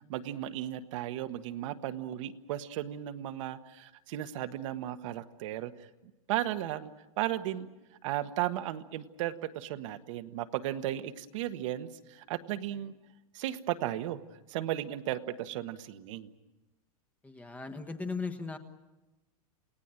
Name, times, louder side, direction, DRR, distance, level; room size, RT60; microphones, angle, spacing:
voice 1, 0.1-5.7 6.3-7.7 8.0-12.9 13.3-14.2 14.5-16.3, right 13 dB, 60° right, 9 dB, 1.5 m, -35 dB
voice 2, 17.2-18.6, left 4 dB, 10° left, 7 dB, 1.3 m, -37 dB
28.5 x 18.0 x 9.0 m, 1.1 s
supercardioid pair, 155°, 18 cm